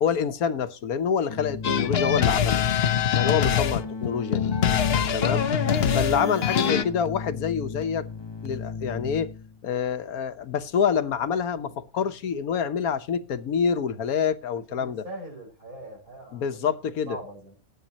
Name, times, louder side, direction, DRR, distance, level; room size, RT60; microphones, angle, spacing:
voice 1, 0.0-2.7 3.1-4.5 5.1-5.4 5.9-8.1 8.4-9.3 9.6-15.0 16.3-17.2, left 7 dB, 80° left, 1.5 m, -27 dB
Keyboard (musical), 1.3-9.6, left 4 dB, 25° left, 0.5 m, -35 dB
sound 1, 1.6-6.8, left 8 dB, 50° left, 0.9 m, -23 dB
voice 2, 14.7-16.7 17.1-17.5, right 1 dB, 70° right, 6.1 m, -42 dB
18.5 x 9.0 x 2.9 m
omnidirectional pair, 1.5 m